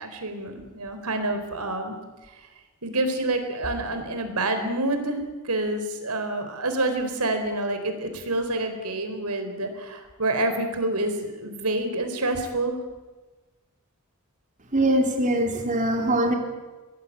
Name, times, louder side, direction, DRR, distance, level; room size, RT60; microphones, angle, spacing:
voice 1, 0.0-2.0 2.3-2.5 2.8-12.8, right 2 dB, 90° right, 7 dB, 4.3 m, -28 dB
voice 2, 14.7-16.3, right 1 dB, 35° right, 3 dB, 3.3 m, -22 dB
24.0 x 19.5 x 8.8 m, 1.2 s
head